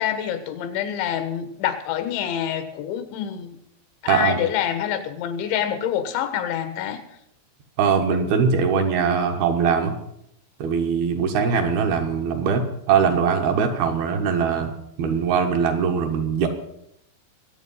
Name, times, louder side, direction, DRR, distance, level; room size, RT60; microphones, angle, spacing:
voice 1, 0.0-3.6 4.0-7.0, left 9 dB, 80° left, 10 dB, 3.6 m, -26 dB
voice 2, 4.1-4.4 7.8-9.9 10.6-14.7 15.0-16.5, right 6 dB, 65° right, 3 dB, 2.9 m, -21 dB
22.5 x 8.5 x 5.5 m, 0.76 s
omnidirectional pair, 5.2 m